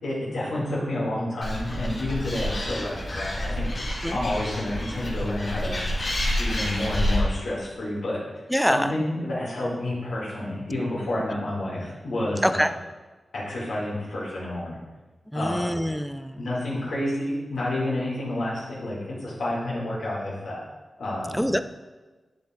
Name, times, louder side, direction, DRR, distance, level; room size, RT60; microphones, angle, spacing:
voice 1, 0.0-5.8 6.4-8.2 8.6-12.7 13.3-14.8 15.3-15.8 16.4-20.6 21.0-21.5, left 1 dB, 90° left, -6 dB, 2.3 m, -29 dB
Animal, 1.4-7.2, left 1 dB, 45° left, 2.5 m, -29 dB
voice 2, 8.5-8.9 12.4-12.7 15.3-16.5 21.3-21.6, equal, ahead, 10 dB, 0.3 m, -24 dB
10.5 x 3.5 x 4.4 m, 1.2 s
wide cardioid pair, 90°, 0 cm